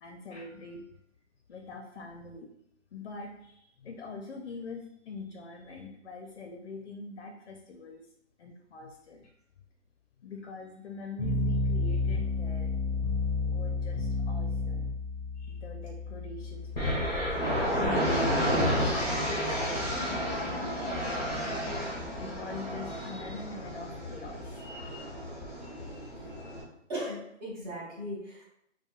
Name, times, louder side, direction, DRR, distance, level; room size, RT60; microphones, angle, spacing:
voice 1, 0.0-0.8 1.5-2.5 2.9-8.1 8.4-9.3 10.2-12.7 13.4-14.9 15.4-18.5 18.8-24.7, left 3 dB, 55° left, 3 dB, 0.4 m, -44 dB
sound 1, 11.2-22.3, left 3 dB, 15° right, 1.5 m, -33 dB
sound 2, 16.7-26.6, equal, 5° left, 0.6 m, -31 dB
voice 2, 26.9-28.4, equal, 35° right, -8 dB, 1.3 m, -37 dB
4.3 x 2.1 x 2.4 m, 0.77 s
figure-of-eight pair, 150°, 38 cm